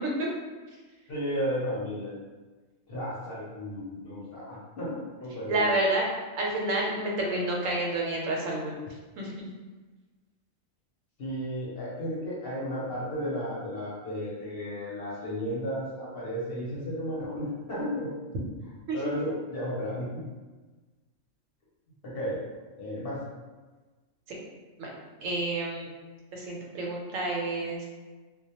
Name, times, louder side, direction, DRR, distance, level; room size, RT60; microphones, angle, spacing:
voice 1, 1.1-2.1 2.9-5.7 11.2-18.1 18.9-20.2 22.0-22.5 22.8-23.2, equal, 55° left, -7 dB, 0.8 m, -33 dB
voice 2, 5.5-6.1 6.4-8.7 9.2-9.5 18.9-19.0 24.8-24.9 25.2-25.9 26.3-27.9, right 2 dB, 85° right, -2 dB, 1.0 m, -29 dB
2.2 x 2.1 x 2.7 m, 1.3 s
omnidirectional pair, 1.3 m